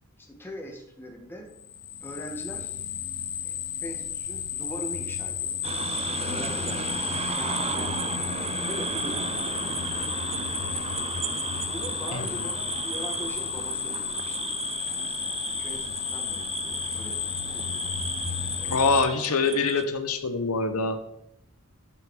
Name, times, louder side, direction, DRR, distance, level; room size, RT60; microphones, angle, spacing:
voice 1, 0.2-1.5 2.0-2.8 3.4-5.6 6.2-6.9 7.3-8.1 8.6-9.3 9.9-10.1 11.6-14.5 15.0-17.9 18.4-19.0, equal, 10° left, 1 dB, 1.6 m, -41 dB
sound 1, 1.6-19.0, left 9 dB, 45° left, 0.7 m, -33 dB
sound 2, 5.6-19.8, right 6 dB, 30° right, 0.4 m, -34 dB
voice 2, 18.6-21.0, left 4 dB, 90° left, 8 dB, 0.9 m, -25 dB
11.5 x 5.0 x 4.8 m, 0.80 s
head